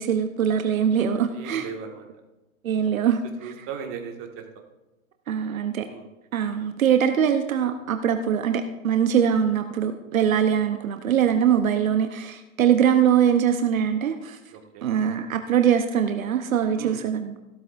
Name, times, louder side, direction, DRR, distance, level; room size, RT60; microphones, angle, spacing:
voice 1, 0.0-1.7 2.6-3.5 5.3-5.9 6.3-14.4 14.8-17.3, right 8 dB, 75° right, 7 dB, 1.0 m, -22 dB
voice 2, 1.3-2.1 3.4-4.4 5.8-6.1 11.3-11.4 14.5-14.9 16.8-17.0, right 6 dB, 30° right, 3 dB, 1.8 m, -37 dB
15.5 x 12.5 x 2.6 m, 1.0 s
hypercardioid pair, 120°, 41 cm